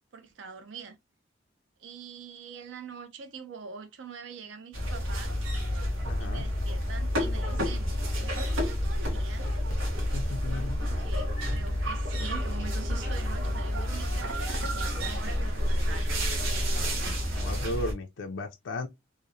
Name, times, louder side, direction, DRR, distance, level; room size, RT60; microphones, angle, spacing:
voice 1, 0.1-1.0 1.8-5.4 6.2-9.5 10.5-16.4, right 5 dB, 65° right, 0.5 m, -44 dB
sound 1, 4.7-17.9, equal, 85° right, 0.8 m, -29 dB
voice 2, 6.0-6.5 10.1-10.8 17.4-18.9, left 1 dB, 70° left, 0.4 m, -35 dB
2.8 x 2.0 x 2.4 m
head